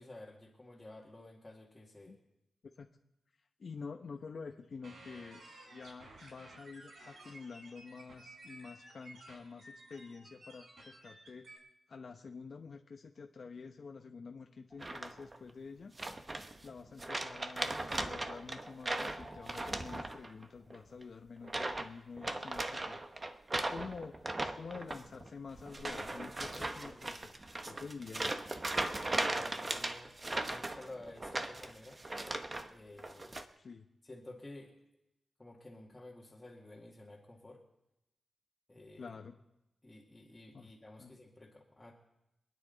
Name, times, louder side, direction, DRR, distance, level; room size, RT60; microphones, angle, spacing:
voice 1, 0.0-2.2 29.1-30.1 30.4-32.0 32.7-33.4 34.0-34.8 35.4-37.6 38.7-39.2 39.8-41.9, left 2 dB, 20° left, -3 dB, 2.0 m, -52 dB
voice 2, 3.6-5.4 5.7-11.5 11.9-15.9 16.6-23.1 23.5-27.4 27.6-28.4 33.6-33.9 39.0-39.4 40.5-40.7 41.0-41.2, left 5 dB, 60° left, 3 dB, 0.9 m, -48 dB
sound 1, 4.8-11.6, right 1 dB, 80° right, 3.9 m, -55 dB
sound 2, 14.7-20.1, equal, 5° right, 3.8 m, -59 dB
sound 3, 14.8-15.4 16.0-16.7 17.0-20.4 20.7-21.0 21.4-21.9 22.2-32.7 33.0-33.4, right 2 dB, 30° right, 1.0 m, -38 dB
26.5 x 9.8 x 4.0 m, 0.92 s
wide cardioid pair, 95°, 0 cm